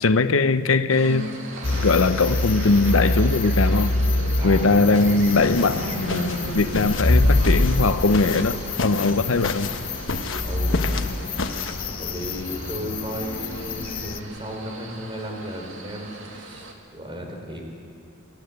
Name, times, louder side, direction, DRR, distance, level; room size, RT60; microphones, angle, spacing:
voice 1, 0.0-1.3 1.8-3.9 4.4-9.7, left 3 dB, 85° left, 12 dB, 0.7 m, -20 dB
sound 1, 0.9-16.7, right 2 dB, 70° right, 2.5 m, -37 dB
sound 2, 1.6-14.2, left 2 dB, 45° left, 0.9 m, -25 dB
voice 2, 4.4-4.7 10.4-11.1 12.0-17.6, equal, 25° right, 1 dB, 3.7 m, -35 dB
sound 3, 4.9-11.7, left 3 dB, 70° left, 1.2 m, -32 dB
29.5 x 12.5 x 8.1 m, 2.5 s
head